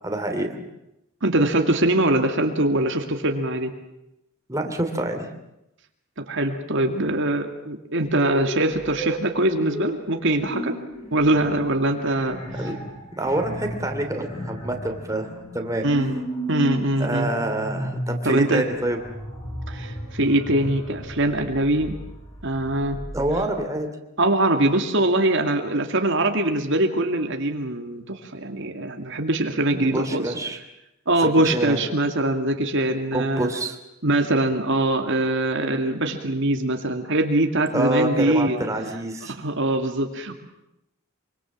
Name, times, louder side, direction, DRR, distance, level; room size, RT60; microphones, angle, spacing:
voice 1, 0.0-0.6 4.5-5.3 12.6-12.7 13.2-15.8 17.0-19.0 23.1-23.9 29.7-30.6 31.2-31.8 33.1-33.8 37.7-39.3, right 1 dB, 15° right, 4 dB, 2.9 m, -26 dB
voice 2, 1.2-3.7 6.2-10.8 11.1-12.4 15.8-16.2 16.5-17.3 18.2-18.6 19.7-22.0 22.4-23.0 24.2-30.3 31.1-33.5 34.0-38.6 39.2-40.3, right 1 dB, 60° right, 4 dB, 2.3 m, -22 dB
sound 1, 8.1-23.4, right 1 dB, 25° left, 7.1 m, -34 dB
25.0 x 25.0 x 7.4 m, 0.87 s
head